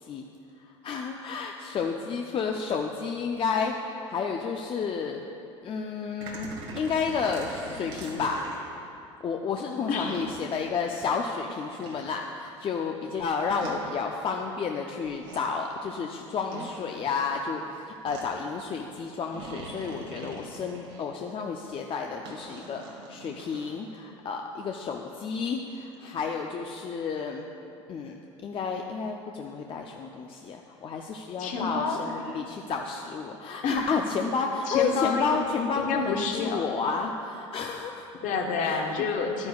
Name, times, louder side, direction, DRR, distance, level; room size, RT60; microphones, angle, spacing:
voice 1, 0.6-5.2 5.6-8.4 8.8-17.6 18.0-27.5 27.9-38.1 38.6-38.8, left 5 dB, 35° left, 2 dB, 0.6 m, -31 dB
sound 1, 6.2-8.7 10.0-10.3 11.8-12.0 13.6-13.8 15.0-15.4 16.5-16.7 18.0-18.2 19.3-21.0 22.2-23.7, right 3 dB, 80° right, 1.6 m, -42 dB
voice 2, 9.9-10.3 31.4-32.4 33.6-34.2 34.7-35.4 35.8-36.6 38.2-39.5, left 4 dB, 55° left, 2 dB, 1.2 m, -29 dB
11.5 x 9.6 x 2.4 m, 2.6 s
hypercardioid pair, 80°, 15 cm